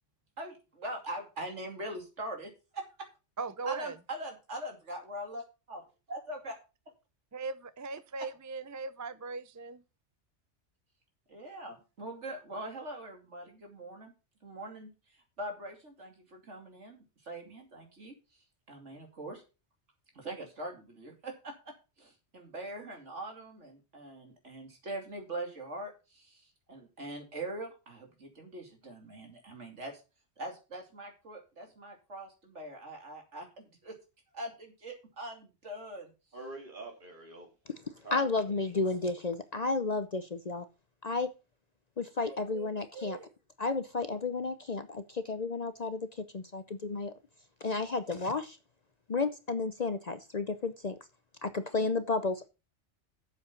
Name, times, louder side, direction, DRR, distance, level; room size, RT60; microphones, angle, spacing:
voice 1, 0.4-3.1 3.6-6.5 11.3-14.1 14.4-18.1 18.7-19.4 20.1-30.0 30.4-34.0 34.3-36.1 42.3-42.7 42.9-43.3, right 1 dB, 80° right, 3.0 m, -42 dB
voice 2, 3.4-4.0 7.3-9.8, right 4 dB, 30° right, 0.3 m, -38 dB
voice 3, 36.3-37.5 38.0-38.8 51.5-51.9, right 2 dB, 45° right, 3.1 m, -46 dB
voice 4, 38.1-40.6 41.0-41.3 42.0-43.2 43.6-46.1 46.3-47.1 47.6-48.6 49.1-50.9 51.4-52.5, left 3 dB, 40° left, 0.7 m, -32 dB
8.1 x 7.3 x 5.8 m
omnidirectional pair, 1.2 m